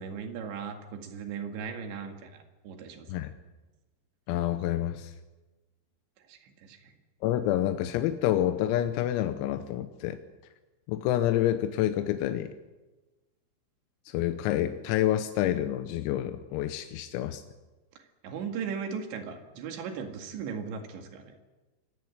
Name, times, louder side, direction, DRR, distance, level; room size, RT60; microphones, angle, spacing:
voice 1, 0.0-3.1 6.3-6.9 18.2-21.4, right 6 dB, 65° right, 6 dB, 4.0 m, -38 dB
voice 2, 4.3-5.1 7.2-10.2 10.9-12.5 14.1-17.4, left 12 dB, 90° left, 9 dB, 3.7 m, -28 dB
25.5 x 15.5 x 9.6 m, 1.2 s
omnidirectional pair, 6.0 m